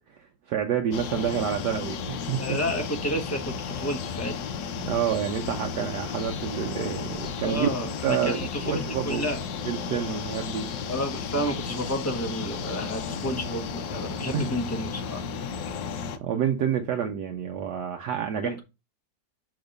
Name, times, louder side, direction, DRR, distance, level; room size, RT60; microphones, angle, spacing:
voice 1, 0.5-2.6 4.8-7.7 8.0-9.2 9.7-10.7 14.3-14.4 16.2-18.6, right 8 dB, 70° right, 1.2 m, -28 dB
sound 1, 0.9-16.2, left 6 dB, 75° left, 1.3 m, -33 dB
voice 2, 2.4-4.3 7.4-9.4 10.9-15.2 18.4-18.6, equal, 20° left, 0.4 m, -31 dB
6.3 x 2.9 x 5.1 m
omnidirectional pair, 2.0 m